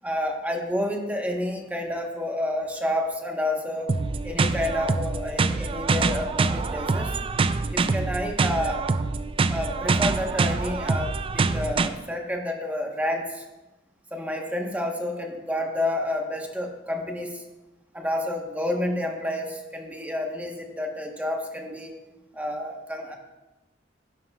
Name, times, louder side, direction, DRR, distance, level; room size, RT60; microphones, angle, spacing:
voice 1, 0.0-3.9 4.2-7.1 7.7-8.8 9.5-13.4 14.1-17.4 17.9-21.9 22.3-23.2, left 1 dB, 10° right, 2 dB, 1.1 m, -29 dB
sound 1, 3.9-11.9, right 4 dB, 30° right, 0.4 m, -25 dB
11.0 x 11.0 x 2.4 m, 1.1 s
head